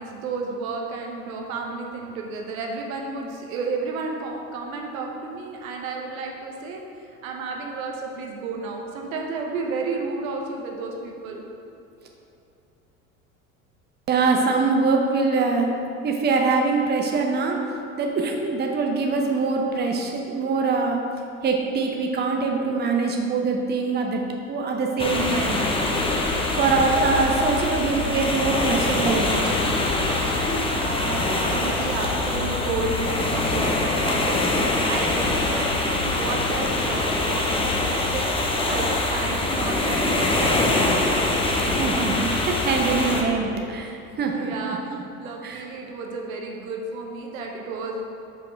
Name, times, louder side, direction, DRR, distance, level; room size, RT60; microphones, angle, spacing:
voice 1, 0.0-6.8 7.2-11.4 30.5-41.0 44.3-44.8 45.2-48.0, right 3 dB, 70° right, 1 dB, 1.0 m, -32 dB
voice 2, 14.1-15.8 16.0-17.6 18.0-21.0 21.4-25.6 26.6-29.5 41.7-45.0 45.4-45.6, right 4 dB, 25° right, 2 dB, 0.8 m, -23 dB
sound 1, 25.0-43.2, left 2 dB, 10° left, 0.8 m, -24 dB
6.2 x 4.6 x 4.6 m, 2.7 s
hypercardioid pair, 75°, 43 cm